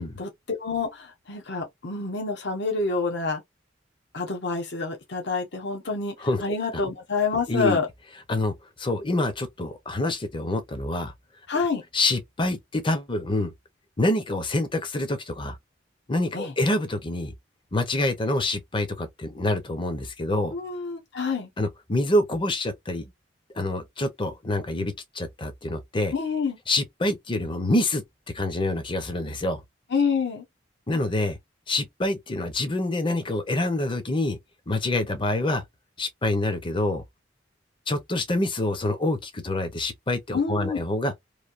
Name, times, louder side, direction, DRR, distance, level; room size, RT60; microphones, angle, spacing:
voice 1, 0.0-3.4 4.1-7.8 11.5-11.8 16.3-16.5 20.5-21.5 26.1-26.6 29.9-30.4 40.3-40.8, left 4 dB, 65° left, 1.0 m, -27 dB
voice 2, 7.5-7.8 8.3-11.1 11.9-13.5 14.0-15.6 16.1-17.3 17.7-20.5 21.6-23.1 23.5-26.1 26.7-28.0 28.3-29.6 30.9-31.4 31.7-34.4 34.7-35.6 36.0-37.0 37.9-41.1, left 1 dB, 25° left, 0.7 m, -26 dB
3.1 x 2.6 x 2.5 m
head